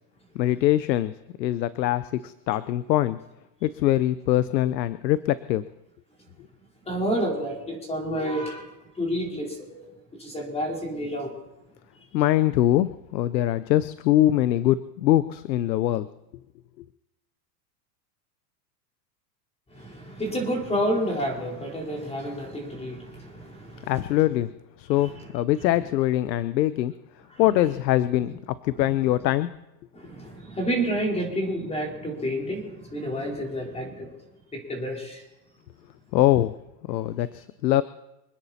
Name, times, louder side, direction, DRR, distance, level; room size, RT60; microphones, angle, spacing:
voice 1, 0.3-1.1 1.4-3.2 3.6-5.6 12.1-16.1 23.9-24.5 24.8-26.9 27.4-29.5 36.1-36.5 36.9-37.8, left 14 dB, 90° left, 15 dB, 0.8 m, -23 dB
voice 2, 6.8-9.9 10.2-11.3 19.7-23.9 24.9-25.3 27.3-27.4 28.7-29.1 29.9-34.1 34.5-35.2, equal, 10° left, 0 dB, 4.3 m, -30 dB
26.0 x 10.0 x 4.3 m, 0.92 s
supercardioid pair, 140°, 50 cm